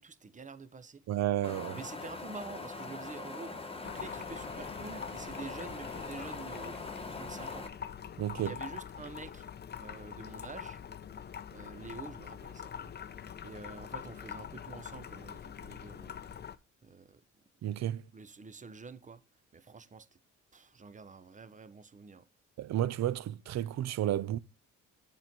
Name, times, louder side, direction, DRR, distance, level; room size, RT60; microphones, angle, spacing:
voice 1, 0.0-1.0 1.7-3.5 3.8-6.8 7.1-7.7 8.4-9.4 9.8-10.8 11.5-12.9 13.4-16.2 16.8-17.2 18.1-19.2 19.5-20.1 20.5-22.3, right 4 dB, 25° right, 0.7 m, -47 dB
voice 2, 1.1-1.8 8.2-8.6 17.6-18.0 22.6-24.4, right 12 dB, 60° right, 0.6 m, -32 dB
Wind, 1.4-7.7, left 3 dB, 20° left, 1.1 m, -42 dB
sound 1, 3.8-16.6, left 8 dB, 35° left, 0.6 m, -44 dB
7.3 x 4.6 x 5.2 m
cardioid pair, 90°, 30 cm